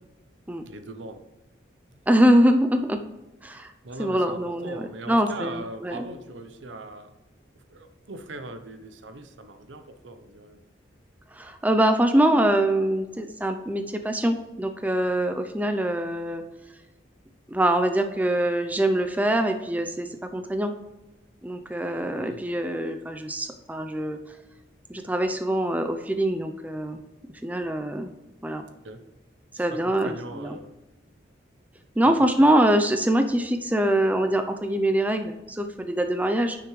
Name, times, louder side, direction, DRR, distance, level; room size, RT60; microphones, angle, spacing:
voice 1, 0.7-1.2 1.9-2.0 3.8-7.1 7.7-10.6 22.2-22.4 28.8-29.0 29.5-30.8 32.4-32.5, right 2 dB, 85° right, 9 dB, 0.8 m, -40 dB
voice 2, 2.1-3.0 3.4-3.7 4.0-6.1 11.3-16.4 17.5-20.7 21.4-24.2 24.9-27.0 27.4-28.1 28.4-28.7 29.5-30.6 32.0-36.6, right 1 dB, 10° right, 6 dB, 0.5 m, -24 dB
10.0 x 6.0 x 3.2 m, 1.0 s
head